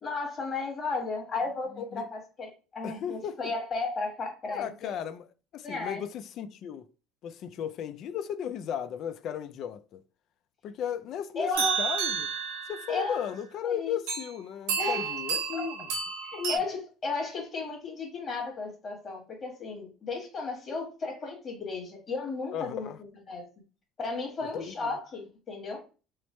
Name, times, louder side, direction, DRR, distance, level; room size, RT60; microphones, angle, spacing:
voice 1, 0.0-4.9 5.6-6.0 11.4-11.8 12.9-13.2 13.6-14.0 14.8-15.1 15.5-15.7 16.3-22.9 23.3-23.4 24.0-25.8, left 3 dB, 30° left, 1.4 m, -34 dB
voice 2, 2.8-3.4 4.5-5.3 5.5-6.9 7.2-10.0 10.6-12.3 12.7-15.8 16.4-16.6 22.5-23.0 24.5-25.0, left 9 dB, 50° left, 0.4 m, -35 dB
sound 1, 11.5-13.2 14.1-14.3 14.7-16.6, right 6 dB, 90° right, 0.9 m, -31 dB
3.2 x 2.0 x 4.2 m
cardioid pair, 135°, 0 cm